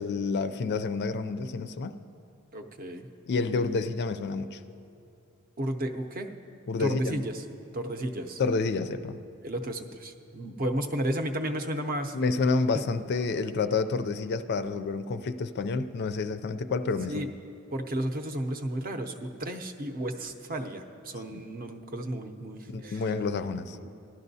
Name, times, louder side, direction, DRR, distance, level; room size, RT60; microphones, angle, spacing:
voice 1, 0.0-2.0 3.3-4.6 6.7-7.2 8.4-9.2 12.1-17.2 21.3-21.4 22.7-23.8, left 4 dB, 50° left, 10 dB, 0.4 m, -29 dB
voice 2, 2.5-3.1 5.6-6.3 6.8-7.4 7.7-8.4 9.4-12.2 12.7-12.8 17.1-17.3 17.7-23.0 23.7-23.9, right 1 dB, 40° right, 5 dB, 0.6 m, -33 dB
17.0 x 11.5 x 2.7 m, 2.6 s
head